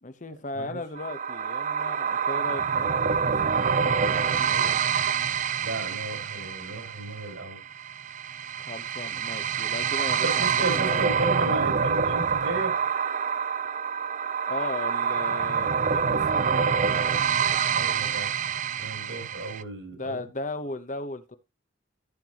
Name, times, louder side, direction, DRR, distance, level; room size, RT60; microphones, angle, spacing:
voice 1, 0.0-4.8 8.6-11.0 14.5-16.7 19.9-21.4, left 2 dB, 40° left, 1.0 m, -37 dB
sound 1, 1.0-19.6, right 6 dB, 40° right, 0.4 m, -26 dB
voice 2, 5.6-7.6 10.2-12.9 17.6-18.3 18.8-20.2, right 2 dB, 80° right, 5.4 m, -34 dB
14.5 x 6.8 x 3.0 m
head